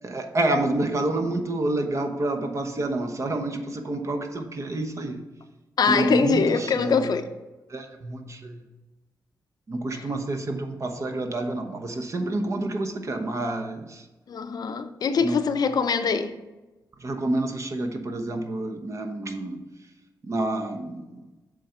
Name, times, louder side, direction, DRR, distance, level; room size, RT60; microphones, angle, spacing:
voice 1, 0.0-5.3 5.9-7.1 7.7-8.6 9.7-14.1 15.2-15.4 17.0-19.6 20.2-21.2, right 2 dB, 40° right, 0.9 m, -28 dB
voice 2, 5.8-7.3 14.3-16.3, left 5 dB, 60° left, 0.5 m, -23 dB
7.4 x 3.9 x 5.5 m
cardioid pair, 100°, 7 cm